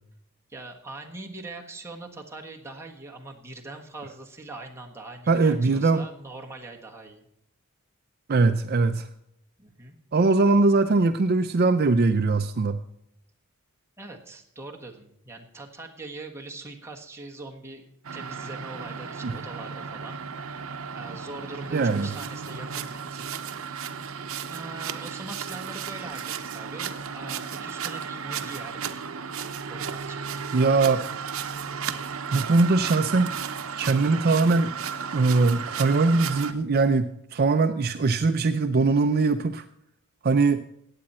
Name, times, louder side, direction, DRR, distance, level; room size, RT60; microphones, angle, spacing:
voice 1, 0.5-7.2 9.6-10.0 14.0-17.9 18.1-20.2 20.9-23.3 24.5-29.0 29.7-30.3, right 2 dB, 10° right, 0 dB, 1.4 m, -42 dB
voice 2, 5.3-6.1 8.3-9.1 10.1-12.8 19.2-19.3 21.7-22.1 30.5-31.0 32.3-33.4 33.8-34.7 35.1-39.6 40.2-40.6, right 3 dB, 45° right, 9 dB, 0.5 m, -21 dB
sound 1, 18.0-36.5, right 6 dB, 70° right, 0.8 m, -34 dB
16.0 x 8.8 x 4.3 m, 0.78 s
head